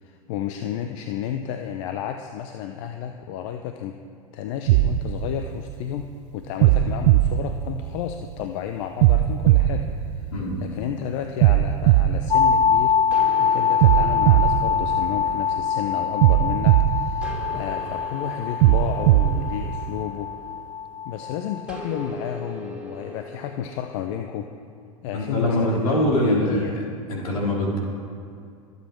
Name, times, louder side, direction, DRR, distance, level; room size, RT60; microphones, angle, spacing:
voice 1, 0.0-4.0 4.3-9.9 10.2-10.3 10.6-20.3 21.0-24.5 25.0-26.8, left 9 dB, 55° left, 6 dB, 0.8 m, -32 dB
sound 1, 4.7-6.0 6.6-8.3 9.0-10.8 11.4-13.2 13.8-15.6 16.2-17.9 18.6-20.0, right 14 dB, 55° right, 0.5 m, -20 dB
voice 2, 10.3-10.6 25.1-26.6 27.1-27.8, left 1 dB, 75° left, -2 dB, 3.4 m, -23 dB
sound 2, 12.3-22.1, left 7 dB, 25° left, 0.6 m, -24 dB
sound 3, 13.1-16.7 17.2-20.9 21.7-24.4, equal, 5° right, 2.9 m, -41 dB
24.0 x 8.4 x 4.5 m, 2.4 s
figure-of-eight pair, 85°, 19 cm